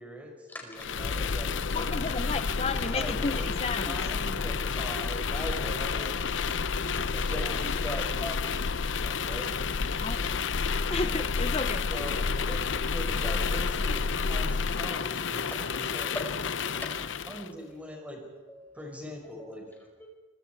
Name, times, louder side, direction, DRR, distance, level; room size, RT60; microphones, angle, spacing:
voice 1, 0.0-2.1 2.9-3.5 3.8-7.7 9.2-9.5 11.9-12.6 12.9-16.2 17.3-18.2 18.7-19.6, equal, 5° right, 1 dB, 5.3 m, -42 dB
sound 1, 0.8-17.5, left 5 dB, 85° left, 0.7 m, -30 dB
voice 2, 1.7-4.0 10.0-10.3 10.9-11.9, left 3 dB, 30° left, 10 dB, 0.7 m, -32 dB
voice 3, 5.0-6.3 6.9-9.3 15.5-17.9 18.2-18.8 19.1-20.1, equal, 10° left, 1 dB, 5.0 m, -42 dB
25.0 x 24.5 x 4.7 m, 1.2 s
head